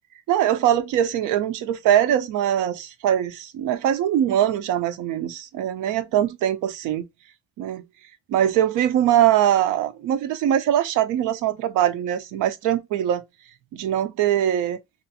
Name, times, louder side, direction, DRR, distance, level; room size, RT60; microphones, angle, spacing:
voice 1, 0.3-7.0 7.6-7.8 8.3-13.2 13.7-14.8, right 11 dB, 90° right, 0.5 m, -22 dB
2.6 x 2.4 x 2.7 m
cardioid pair, 90°, 30 cm